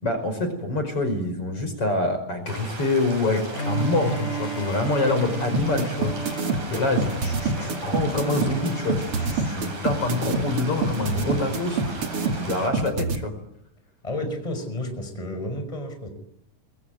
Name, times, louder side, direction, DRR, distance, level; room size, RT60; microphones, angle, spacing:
voice 1, 0.0-6.1 6.7-11.8 12.3-13.3, left 2 dB, 40° left, 8 dB, 6.1 m, -26 dB
sound 1, 2.5-12.7, right 3 dB, 65° right, 8.6 m, -37 dB
Bowed string instrument, 3.5-9.6, right 4 dB, 75° left, 7.6 m, -33 dB
sound 2, 5.5-13.2, right 3 dB, 45° right, 3.0 m, -25 dB
voice 2, 14.0-16.1, left 1 dB, 10° left, 6 dB, 5.4 m, -31 dB
27.0 x 23.0 x 9.5 m, 0.73 s
omnidirectional pair, 3.8 m